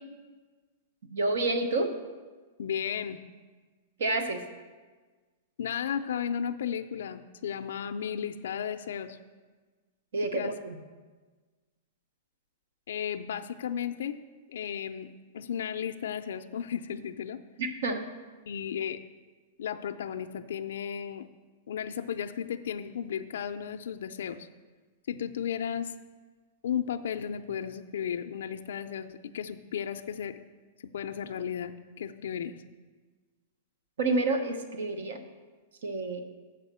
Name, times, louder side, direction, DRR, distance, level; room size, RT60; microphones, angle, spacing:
voice 1, 1.1-1.9 4.0-4.4 10.1-10.8 17.6-18.1 34.0-35.2 35.8-36.2, right 2 dB, 80° right, 7 dB, 0.9 m, -29 dB
voice 2, 2.6-3.2 5.6-9.2 10.2-10.5 12.9-14.2 14.5-17.4 18.5-19.0 19.6-21.3 21.7-24.5 25.1-25.9 26.6-30.3 30.8-32.5, left 8 dB, 75° left, 7 dB, 0.4 m, -34 dB
7.2 x 4.9 x 6.7 m, 1.4 s
supercardioid pair, 170°, 0 cm